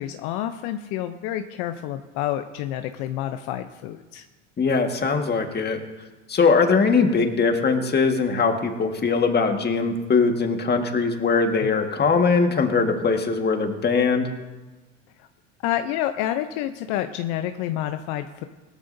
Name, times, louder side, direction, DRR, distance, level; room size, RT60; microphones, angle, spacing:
voice 1, 0.0-4.2 15.2-15.3 15.6-18.4, left 12 dB, 65° left, 8 dB, 0.8 m, -28 dB
voice 2, 4.6-5.8 6.3-14.3, left 4 dB, 25° left, 5 dB, 1.7 m, -21 dB
17.5 x 13.5 x 2.7 m, 1.2 s
hypercardioid pair, 90°, 37 cm